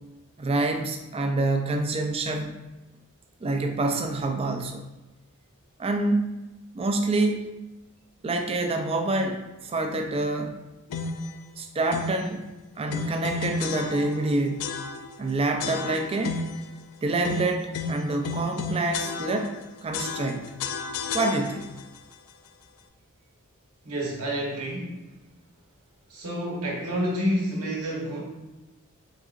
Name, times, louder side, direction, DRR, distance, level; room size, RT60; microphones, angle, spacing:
voice 1, 0.4-2.5 3.4-4.8 5.8-6.3 6.7-7.4 8.2-10.6 11.6-14.7 15.2-16.4 17.0-20.5 21.1-21.7, right 2 dB, 25° right, 4 dB, 0.3 m, -27 dB
sound 1, 10.9-11.3 11.9-12.3 12.9-14.3 14.6-15.2 15.6-16.7 17.2-19.6 19.9-21.8, left 4 dB, 85° left, 0.3 m, -32 dB
voice 2, 23.8-25.0 26.1-28.2, equal, 80° right, -2 dB, 1.0 m, -29 dB
4.0 x 3.6 x 2.4 m, 1.0 s
head